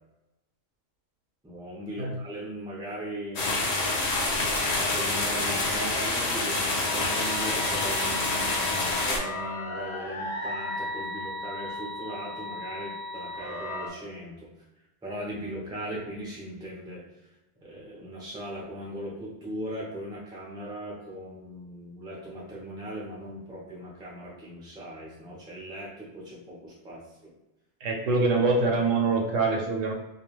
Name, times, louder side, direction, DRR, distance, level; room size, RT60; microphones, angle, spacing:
voice 1, 1.4-3.6 4.8-14.5 15.0-17.3 17.6-27.3, equal, 5° right, -5 dB, 0.4 m, -39 dB
sound 1, 3.4-9.2, left 2 dB, 90° left, 0.3 m, -27 dB
sound 2, 6.8-13.9, left 2 dB, 55° left, 0.7 m, -36 dB
voice 2, 27.8-29.9, right 3 dB, 80° right, 1 dB, 0.9 m, -24 dB
2.3 x 2.3 x 3.0 m, 0.99 s
omnidirectional pair, 1.3 m